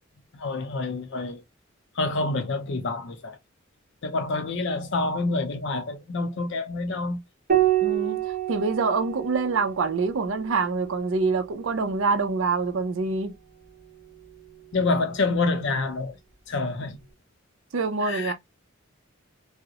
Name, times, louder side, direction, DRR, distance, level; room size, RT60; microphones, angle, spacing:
voice 1, 0.3-1.4 2.0-3.4 4.0-7.2 14.7-16.2 16.5-17.0 18.0-18.3, left 3 dB, 60° left, 0.5 m, -27 dB
Piano, 7.5-12.3 14.0-14.8, right 12 dB, 45° right, 0.9 m, -29 dB
voice 2, 7.8-8.2 8.5-13.3 17.7-18.3, right 4 dB, 70° right, 0.5 m, -25 dB
2.3 x 2.0 x 2.7 m
head